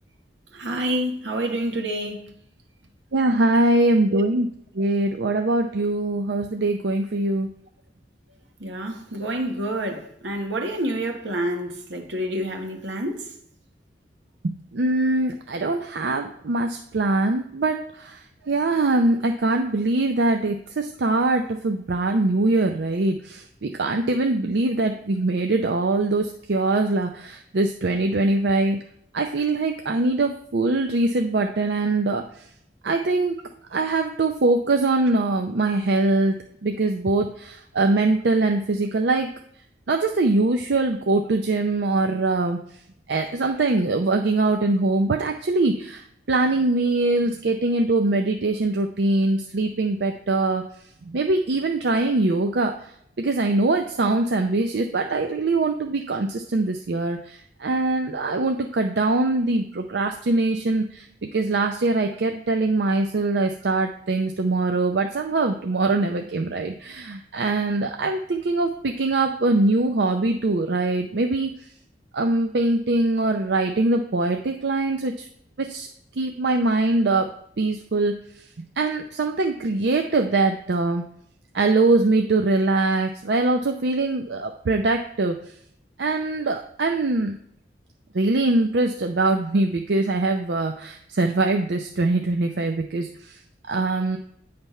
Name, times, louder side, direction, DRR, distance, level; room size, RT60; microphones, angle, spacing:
voice 1, 0.5-2.2 4.1-4.2 8.6-13.3, right 1 dB, 85° right, 1.3 m, -28 dB
voice 2, 3.1-4.5 4.7-7.5 14.4-28.8 29.1-32.4 32.8-33.4 33.7-39.3 39.9-42.6 43.1-50.6 51.1-52.9 53.2-71.5 72.1-75.3 75.6-75.9 76.2-77.3 77.6-78.1 78.6-81.0 81.5-85.3 86.0-87.4 88.1-93.4 93.7-94.2, right 2 dB, 70° right, 0.5 m, -23 dB
9.1 x 3.4 x 5.6 m
head